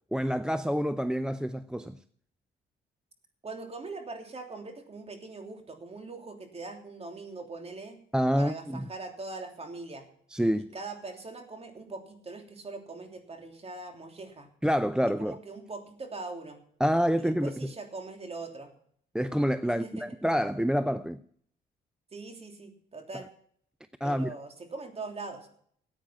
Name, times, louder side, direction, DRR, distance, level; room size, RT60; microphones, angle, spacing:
voice 1, 0.1-2.0 8.1-8.9 10.3-10.7 14.6-15.3 16.8-17.7 19.1-21.2 24.0-24.3, equal, 5° right, 0.5 m, -27 dB
voice 2, 3.4-8.0 8.4-10.1 10.7-14.5 15.2-16.6 17.2-18.7 19.7-20.1 22.1-23.3 24.0-25.5, right 3 dB, 30° right, 3.1 m, -41 dB
14.5 x 9.0 x 5.8 m
cardioid pair, 90°, 20 cm